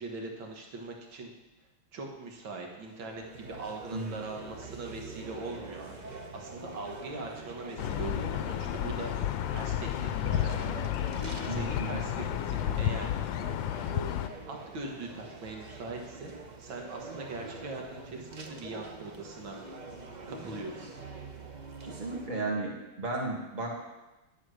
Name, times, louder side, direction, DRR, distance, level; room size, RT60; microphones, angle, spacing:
voice 1, 0.0-1.3 1.9-6.0 6.3-9.1 9.5-10.9 11.5-13.1 14.5-16.3 16.6-19.6 20.3-20.9, right 3 dB, 70° right, 1 dB, 2.2 m, -41 dB
sound 1, 2.6-22.3, right 3 dB, 55° right, 0.5 m, -45 dB
sound 2, 7.8-14.3, left 11 dB, 75° left, 1.2 m, -32 dB
voice 2, 11.5-12.0 21.8-23.8, right 2 dB, 20° right, -2 dB, 1.9 m, -34 dB
11.5 x 7.6 x 6.4 m, 1.1 s
omnidirectional pair, 2.2 m